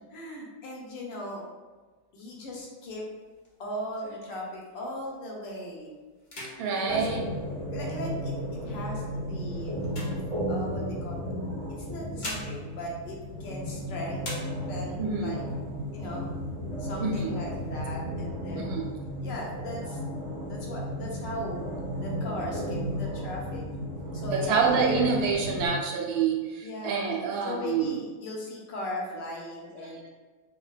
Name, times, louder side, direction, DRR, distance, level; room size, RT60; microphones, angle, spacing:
voice 1, 0.1-1.5 2.1-3.0 3.6-5.9 6.3-6.5 6.9-7.1 7.7-8.3 8.6-9.8 10.5-11.3 11.8-14.2 14.7-15.4 15.9-16.3 16.8-18.8 19.2-20.0 20.5-21.6 22.0-23.6 24.1-25.1 26.6-30.1, left 1 dB, 70° left, -2 dB, 1.4 m, -38 dB
sound 1, 3.0-5.1 5.6-5.8 6.2-8.1 8.8-10.9 11.8-13.8 14.2-15.0 15.5-15.6 15.9-16.5 17.0-17.9, left 1 dB, 85° left, 0.4 m, -44 dB
voice 2, 6.6-7.2 13.6-13.7 15.0-15.4 17.0-17.4 18.5-18.9 24.3-28.0, right 5 dB, 85° right, -1 dB, 1.4 m, -27 dB
sound 2, 6.9-25.7, equal, 5° right, 0.8 m, -34 dB
5.1 x 2.2 x 2.4 m, 1.3 s
omnidirectional pair, 2.1 m